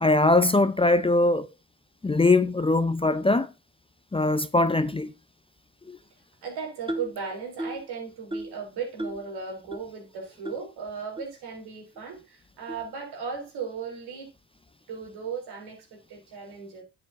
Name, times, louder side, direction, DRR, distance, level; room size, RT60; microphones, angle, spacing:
voice 1, 0.0-1.5 2.0-3.5 4.1-5.1 5.9-6.0, left 2 dB, 15° left, 0.7 m, -21 dB
voice 2, 6.4-14.3 14.9-16.8, right 5 dB, 75° right, 3.7 m, -36 dB
sound 1, 6.9-7.2 7.6-7.9 8.3-8.6 9.0-9.3 9.7-9.8 10.4-10.6 11.2-11.3 12.0-12.1 12.7-12.9, right 1 dB, 15° right, 1.6 m, -34 dB
10.0 x 7.8 x 2.7 m
supercardioid pair, 60°, 39 cm